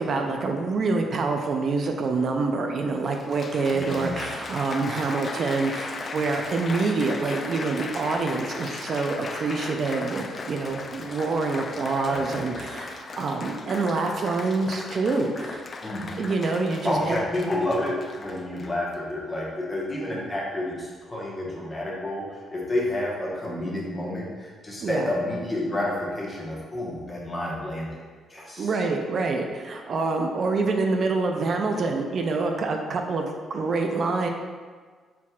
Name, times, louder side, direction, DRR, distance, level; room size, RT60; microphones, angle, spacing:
voice 1, 0.0-15.7 16.2-17.2 24.8-25.1 28.6-34.3, right 3 dB, 50° right, 3 dB, 0.4 m, -26 dB
Applause, 2.3-2.4 3.0-19.0 19.7-20.0, left 3 dB, 40° left, 0.3 m, -37 dB
voice 2, 3.7-4.3 12.0-12.6 15.8-16.2 16.8-27.9 28.3-28.7, left 1 dB, 20° left, -4 dB, 1.2 m, -30 dB
4.2 x 4.0 x 2.4 m, 1.5 s
cardioid pair, 90°, 0 cm